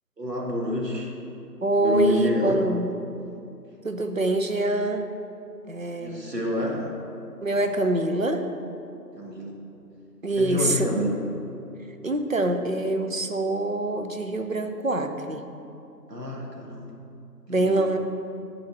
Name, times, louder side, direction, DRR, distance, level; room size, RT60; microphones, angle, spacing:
voice 1, 0.2-1.1 1.8-2.6 6.0-6.9 9.2-9.6 10.4-11.2 16.1-16.9 17.5-17.8, equal, 75° right, -2 dB, 1.8 m, -28 dB
voice 2, 1.6-2.9 3.8-5.1 5.7-6.3 7.4-8.5 10.2-10.9 12.0-15.4 17.5-18.0, right 1 dB, 55° right, 6 dB, 0.5 m, -25 dB
6.8 x 4.2 x 6.3 m, 2.7 s
figure-of-eight pair, 175°, 49 cm